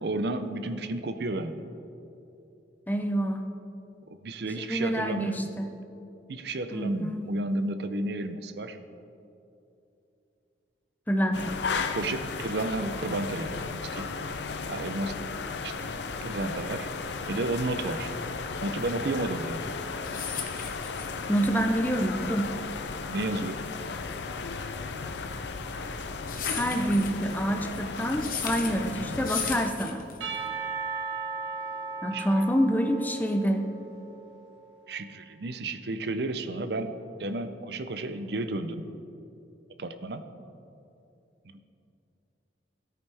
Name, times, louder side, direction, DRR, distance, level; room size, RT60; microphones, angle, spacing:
voice 1, 0.0-1.6 4.0-5.4 6.3-8.8 11.4-11.5 11.9-14.1 14.7-15.2 15.6-15.7 16.2-16.9 17.3-18.1 18.6-19.7 23.1-23.6 32.1-32.4 34.9-38.9 39.8-40.2 41.5-41.6, right 2 dB, 65° right, 10 dB, 0.6 m, -32 dB
voice 2, 2.9-3.4 4.6-5.7 6.7-7.3 11.1-11.5 21.3-22.5 26.4-30.0 32.0-33.6, equal, 10° left, 4 dB, 0.6 m, -27 dB
sound 1, 11.3-29.7, left 4 dB, 75° left, 0.5 m, -35 dB
sound 2, 20.0-30.5, left 7 dB, 50° left, 0.9 m, -37 dB
Percussion / Church bell, 30.2-34.4, right 5 dB, 85° right, 1.6 m, -36 dB
14.0 x 8.6 x 3.4 m, 2.7 s
head